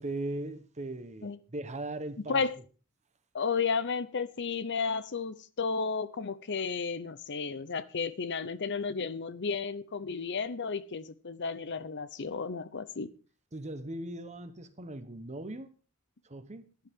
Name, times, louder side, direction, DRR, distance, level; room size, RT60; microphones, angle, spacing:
voice 1, 0.0-2.5 13.5-15.7 16.2-16.6, right 2 dB, 30° right, 1.1 m, -39 dB
voice 2, 3.3-13.1, left 5 dB, 55° left, 0.7 m, -33 dB
14.5 x 10.5 x 3.7 m
head